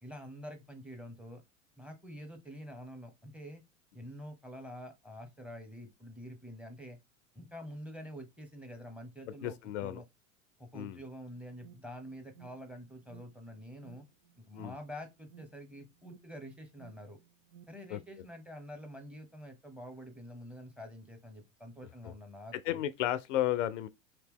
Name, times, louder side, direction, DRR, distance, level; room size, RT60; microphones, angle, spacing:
voice 1, 0.0-1.4 1.8-3.6 3.9-7.0 7.3-10.0 10.6-14.0 14.5-17.2 17.7-22.8, equal, 5° right, 0.8 m, -47 dB
voice 2, 9.4-10.0 10.7-11.0 14.5-14.7 17.9-18.0 22.0-22.1 22.7-23.9, left 12 dB, 65° left, 0.5 m, -33 dB
Alarm, 11.0-17.7, right 9 dB, 75° right, 0.7 m, -59 dB
2.9 x 2.8 x 3.5 m
hypercardioid pair, 95°, 41 cm